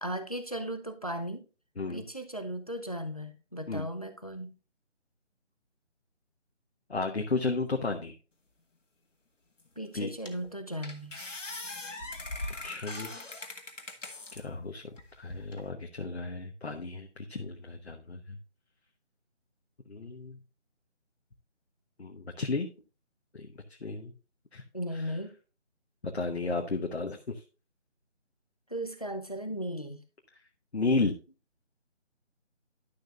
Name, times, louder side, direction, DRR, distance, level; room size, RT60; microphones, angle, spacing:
voice 1, 0.0-1.4 1.9-4.5 9.8-11.1 24.7-25.3 28.7-30.0, equal, 30° left, 0.6 m, -36 dB
voice 2, 6.9-8.1 9.9-10.1 12.6-13.1 14.3-14.8 15.2-18.4 19.9-20.4 22.0-22.7 23.3-23.5 23.8-24.1 24.5-24.6 26.0-27.4 30.7-31.1, left 3 dB, 60° left, 1.1 m, -33 dB
sound 1, 9.6-9.7 10.3-10.5 10.8-14.4 15.0-15.6, left 2 dB, 80° left, 1.8 m, -40 dB
11.5 x 6.7 x 2.4 m
figure-of-eight pair, 175°, 37 cm